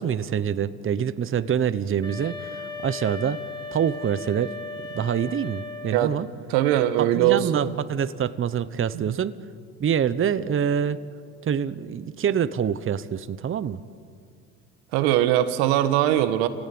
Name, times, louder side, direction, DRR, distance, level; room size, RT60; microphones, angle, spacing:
voice 1, 0.0-3.4 3.7-4.5 4.9-6.3 7.0-9.4 9.8-11.0 11.4-13.8, right 8 dB, 35° right, 14 dB, 1.0 m, -26 dB
sound 1, 2.0-6.2, left 3 dB, 15° left, 4.8 m, -37 dB
voice 2, 6.5-7.7 8.9-9.1 14.9-16.5, right 12 dB, 80° right, 10 dB, 1.7 m, -21 dB
28.5 x 17.0 x 9.5 m, 2.2 s
supercardioid pair, 80°, 36 cm